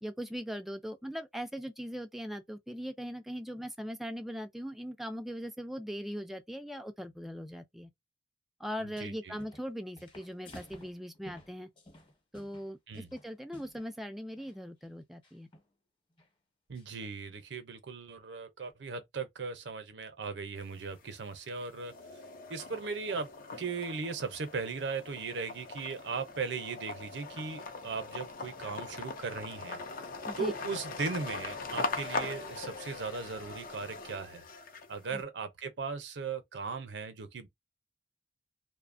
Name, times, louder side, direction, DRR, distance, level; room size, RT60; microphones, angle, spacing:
voice 1, 0.0-7.9 8.6-11.7 12.3-12.8 13.1-15.5 30.3-30.5 35.1-35.2, equal, ahead, 0.3 m, -40 dB
voice 2, 8.8-9.4 12.9-13.1 16.7-21.9 22.5-23.3 23.6-29.8 30.4-34.4 34.9-37.5, right 4 dB, 75° right, 0.6 m, -38 dB
sound 1, 9.1-9.7 10.0-13.9 14.3-14.6 15.2-15.7 16.2-16.3 16.7-17.1, left 1 dB, 30° left, 1.0 m, -54 dB
sound 2, 20.6-21.2 21.6-35.1, left 3 dB, 50° left, 0.5 m, -41 dB
2.7 x 2.1 x 2.5 m
head